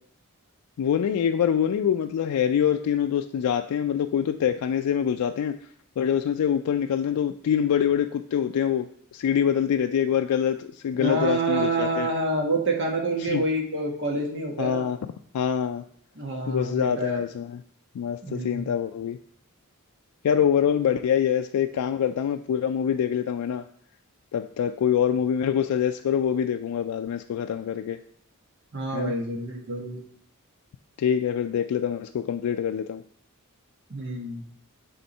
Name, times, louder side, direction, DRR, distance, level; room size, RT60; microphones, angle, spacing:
voice 1, 0.8-5.6 6.0-12.1 13.2-13.4 14.6-15.0 15.3-15.8 16.5-17.6 17.9-19.2 20.2-23.6 24.3-28.0 28.9-29.1 31.0-33.0, left 8 dB, 85° left, 7 dB, 0.3 m, -25 dB
voice 2, 10.9-14.9 16.2-17.2 18.2-18.7 28.7-30.0 33.9-34.4, right 2 dB, 55° right, 1 dB, 1.3 m, -27 dB
6.9 x 3.6 x 5.3 m, 0.63 s
head